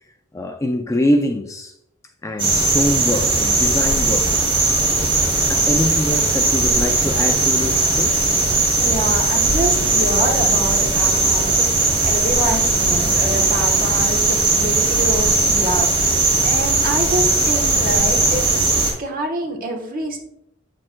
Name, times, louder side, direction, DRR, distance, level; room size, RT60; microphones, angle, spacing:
voice 1, 0.3-1.7 2.2-4.6 5.5-8.3, left 1 dB, 15° left, 0.3 m, -24 dB
sound 1, 2.4-18.9, right 2 dB, 25° right, 2.7 m, -18 dB
voice 2, 8.7-18.7 19.0-20.2, right 1 dB, 40° right, 1.1 m, -26 dB
8.5 x 6.3 x 2.2 m
head